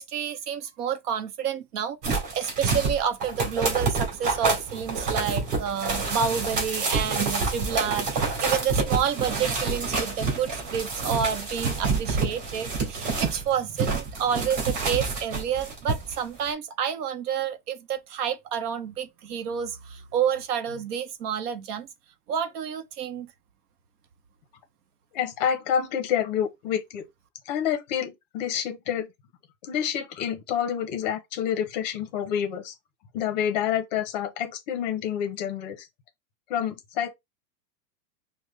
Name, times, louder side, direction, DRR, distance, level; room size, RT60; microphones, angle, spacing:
voice 1, 0.0-21.9 22.3-23.3, right 7 dB, 65° right, 0.9 m, -29 dB
sound 1, 2.0-13.4 13.8-16.2 16.5-16.6, right 4 dB, 45° right, 2.4 m, -28 dB
voice 2, 25.1-27.0 27.5-29.1 29.6-32.7 33.1-35.8 36.5-37.1, left 9 dB, 30° left, 0.6 m, -28 dB
4.9 x 2.1 x 3.1 m
supercardioid pair, 175°, 49 cm